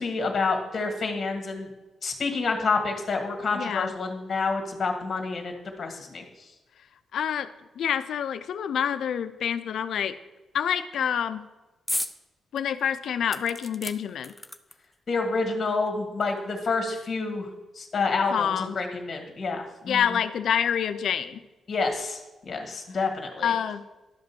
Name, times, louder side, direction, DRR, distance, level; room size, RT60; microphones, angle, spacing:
voice 1, 0.0-1.7 2.0-5.5 5.8-6.2 15.1-17.5 17.8-20.0 21.7-22.2 22.5-23.5, left 4 dB, 35° left, 3 dB, 1.7 m, -28 dB
voice 2, 3.5-3.9 7.1-7.5 7.8-10.2 10.5-11.5 12.5-14.3 18.3-18.8 19.9-21.4 23.4-23.8, left 8 dB, 65° left, 11 dB, 0.5 m, -27 dB
sound 1, 11.9-12.2 12.6-12.7 13.3-15.0 15.8-15.9 16.2-16.3, left 1 dB, ahead, 0.4 m, -34 dB
11.5 x 5.2 x 6.9 m, 1.1 s
wide cardioid pair, 180°, 0 cm